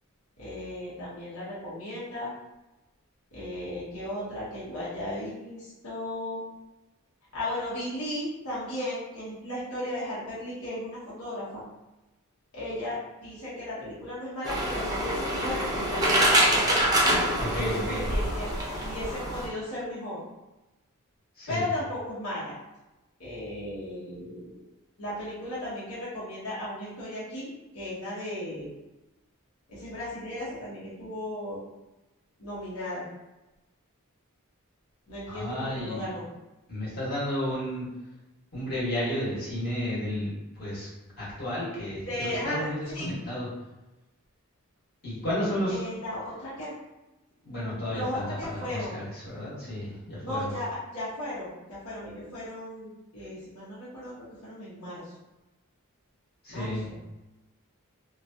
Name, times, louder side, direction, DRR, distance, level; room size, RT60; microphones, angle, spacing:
voice 1, 0.4-2.3 3.3-6.4 7.3-11.6 12.5-16.5 17.5-18.5 18.8-20.2 21.5-22.6 23.2-24.6 25.0-27.5 27.7-28.7 29.7-31.6 32.4-33.0 35.1-36.2 42.0-43.1 45.7-46.7 47.9-49.0 50.2-55.1 56.5-57.0, left 1 dB, 85° left, -9 dB, 1.1 m, -35 dB
sound 1, 14.4-19.5, right 1 dB, 20° right, 0.6 m, -25 dB
voice 2, 17.4-18.0 21.4-21.6 35.3-36.1 36.7-37.9 38.5-40.9 41.2-43.5 45.0-45.8 47.4-50.5 56.4-56.9, left 1 dB, 45° left, -8 dB, 1.4 m, -32 dB
2.9 x 2.3 x 2.7 m, 1.0 s
head